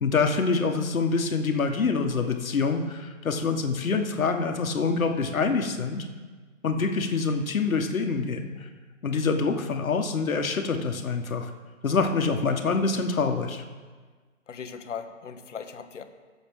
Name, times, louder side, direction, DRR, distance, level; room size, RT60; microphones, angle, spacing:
voice 1, 0.0-6.0 6.6-8.7 9.0-11.5 11.8-13.6, left 4 dB, 85° left, 5 dB, 1.5 m, -26 dB
voice 2, 14.5-16.0, left 6 dB, 65° left, 8 dB, 1.1 m, -38 dB
14.5 x 7.0 x 3.7 m, 1.4 s
hypercardioid pair, 170°, 40 cm